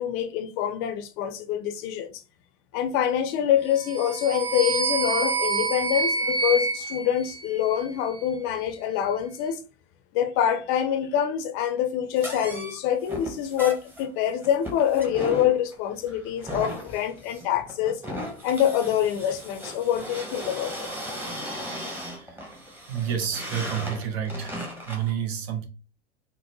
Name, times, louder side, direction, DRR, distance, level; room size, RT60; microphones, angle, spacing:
voice 1, 0.0-2.2 2.7-9.6 10.1-18.0 18.4-20.9, left 10 dB, 45° left, 0.6 m, -25 dB
sound 1, 3.8-8.1, right 4 dB, 40° right, 0.7 m, -28 dB
sound 2, 12.2-25.1, equal, 5° right, 0.9 m, -37 dB
voice 2, 22.9-24.6 24.9-25.6, right 8 dB, 60° right, 1.0 m, -29 dB
3.9 x 2.0 x 2.9 m
hypercardioid pair, 95°, 35 cm